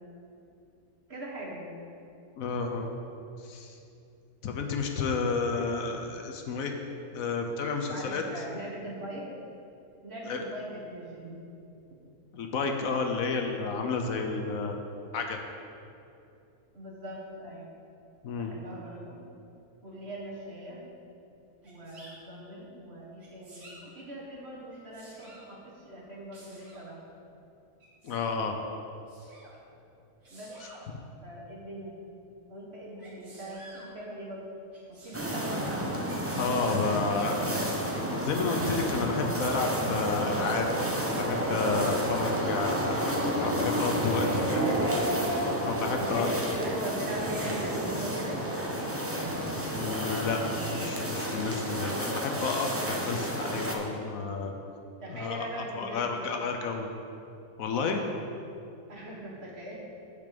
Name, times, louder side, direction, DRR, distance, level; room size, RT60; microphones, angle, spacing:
voice 1, 1.1-1.8 5.5-5.9 7.9-9.2 10.0-11.4 16.7-17.7 18.3-19.4 19.8-20.8 21.6-27.0 30.3-30.5 31.2-32.0 32.5-34.4 34.9-35.5 44.2-45.1 46.0-48.4 55.0-56.2 58.9-59.8, right 1 dB, 45° right, -4 dB, 1.7 m, -40 dB
voice 2, 2.4-2.9 3.4-3.8 4.4-6.8 7.1-8.4 10.3-10.4 12.3-14.8 15.1-15.4 18.2-18.5 28.0-28.6 36.3-37.8 38.1-40.7 41.2-44.3 45.6-46.3 49.7-50.4 50.7-54.5 55.1-56.9 57.6-58.0, left 4 dB, 70° left, 4 dB, 1.1 m, -31 dB
Sneeze, 21.6-22.1 23.2-23.8 24.7-25.5 26.3-26.8 27.8-28.3 29.1-29.5 30.2-30.8 33.0-33.9 34.7-35.5 36.0-36.8 37.5-37.8, right 1 dB, 75° right, 2.4 m, -51 dB
sound 1, 35.1-53.7, equal, 15° right, 0.5 m, -30 dB
8.3 x 6.6 x 5.1 m, 2.7 s
omnidirectional pair, 1.6 m